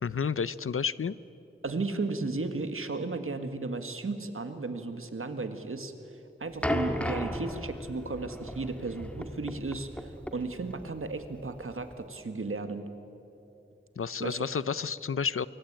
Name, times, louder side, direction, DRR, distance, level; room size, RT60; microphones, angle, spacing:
voice 1, 0.0-1.2 14.0-15.5, left 6 dB, 90° left, 17 dB, 0.6 m, -30 dB
voice 2, 1.6-5.9 6.4-12.9 14.2-14.5, right 3 dB, 80° right, 8 dB, 1.8 m, -34 dB
sound 1, 6.6-12.0, equal, 5° left, 1.7 m, -35 dB
24.5 x 23.5 x 8.9 m, 2.9 s
wide cardioid pair, 70°, 21 cm